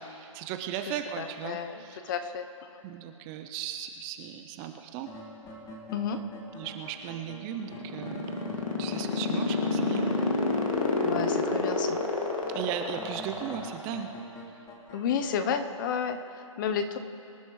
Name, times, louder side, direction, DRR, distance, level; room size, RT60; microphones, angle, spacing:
voice 1, 0.0-2.0 2.8-5.1 6.6-8.2 8.8-10.1 12.5-14.1, right 9 dB, 20° right, 7 dB, 0.5 m, -37 dB
voice 2, 1.2-2.8 5.9-6.2 11.0-12.0 14.9-17.0, left 7 dB, 35° left, 9 dB, 0.8 m, -32 dB
sound 1, 5.0-12.1 12.4-15.3, equal, 15° left, 1.7 m, -45 dB
sound 2, 7.5-14.1, left 3 dB, 80° left, 2.2 m, -27 dB
24.5 x 11.5 x 3.2 m, 2.7 s
hypercardioid pair, 145°, 17 cm